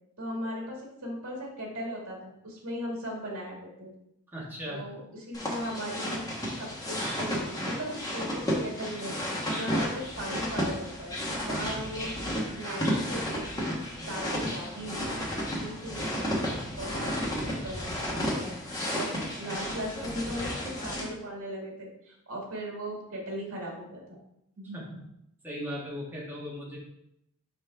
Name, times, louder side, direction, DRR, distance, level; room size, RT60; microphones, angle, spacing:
voice 1, 0.2-3.9 4.7-6.2 6.6-9.1 9.5-13.7 14.0-16.3 16.8-17.2 17.4-18.5 18.9-19.1 19.4-24.2 24.6-24.8, equal, 75° right, -1 dB, 2.2 m, -38 dB
voice 2, 4.3-4.8 11.6-12.0 24.7-25.0 25.4-26.8, equal, 10° right, -5 dB, 1.6 m, -38 dB
sound 1, 5.3-21.0, equal, 15° left, 1.3 m, -32 dB
5.8 x 5.3 x 3.5 m, 0.81 s
head